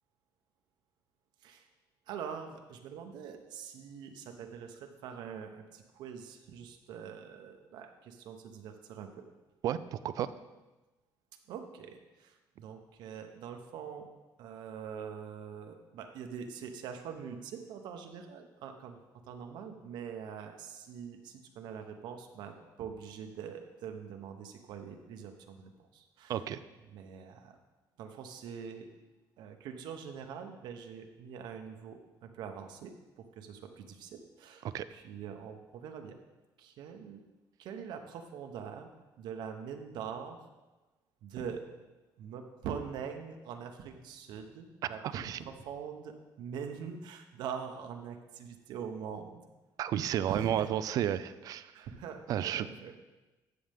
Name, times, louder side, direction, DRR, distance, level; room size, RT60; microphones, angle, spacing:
voice 1, 2.1-9.2 11.5-14.1 14.4-26.4 26.9-27.6 28.0-28.9 29.4-36.2 36.6-37.2 37.6-38.9 39.2-40.4 41.2-41.6 42.2-49.4 50.3-50.7 51.7-53.0, right 7 dB, 70° right, 5 dB, 0.9 m, -44 dB
voice 2, 9.6-10.3 26.3-26.6 34.7-34.9 45.0-45.4 49.8-51.7 52.3-52.7, right 10 dB, 50° right, 14 dB, 0.4 m, -32 dB
13.0 x 7.8 x 3.5 m, 1.1 s
cardioid pair, 180°, 8 cm